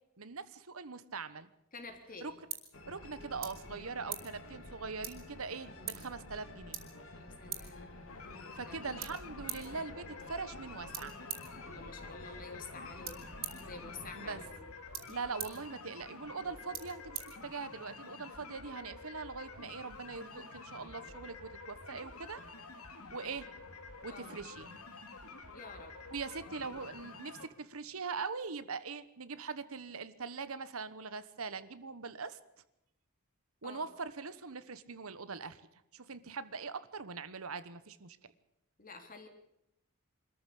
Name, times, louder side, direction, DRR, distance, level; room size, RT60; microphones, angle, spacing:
voice 1, 0.2-1.5 2.2-2.3 2.9-6.8 8.6-11.1 14.2-14.4 15.1-22.4 23.1-23.5 24.0-24.8 26.1-32.4 33.6-35.6 35.9-38.2, right 4 dB, 75° right, 14 dB, 1.2 m, -42 dB
voice 2, 1.7-2.4 7.1-8.0 8.6-8.7 11.6-13.2 13.6-14.7 24.1-24.4 25.5-25.9 26.7-26.8 33.6-33.8 38.8-39.3, left 3 dB, 40° left, 5 dB, 3.3 m, -49 dB
sound 1, 1.7-18.0, right 9 dB, 40° right, 3.6 m, -48 dB
sound 2, 2.7-14.4, left 2 dB, 60° left, 3.0 m, -51 dB
sound 3, 8.1-27.5, left 4 dB, 85° left, 2.6 m, -49 dB
25.0 x 14.0 x 8.6 m, 0.81 s
head